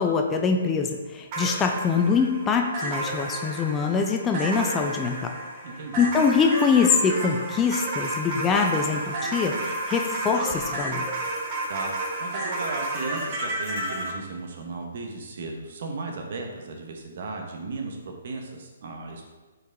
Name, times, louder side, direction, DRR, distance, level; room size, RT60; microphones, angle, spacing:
voice 1, 0.0-5.4 6.0-11.1, left 5 dB, 15° left, 3 dB, 0.5 m, -24 dB
sound 1, 1.3-14.1, right 2 dB, 35° right, 1.2 m, -31 dB
voice 2, 5.6-6.0 11.7-19.3, right 3 dB, 55° right, 2 dB, 1.1 m, -35 dB
5.2 x 4.6 x 3.9 m, 1.2 s
hypercardioid pair, 145°, 0 cm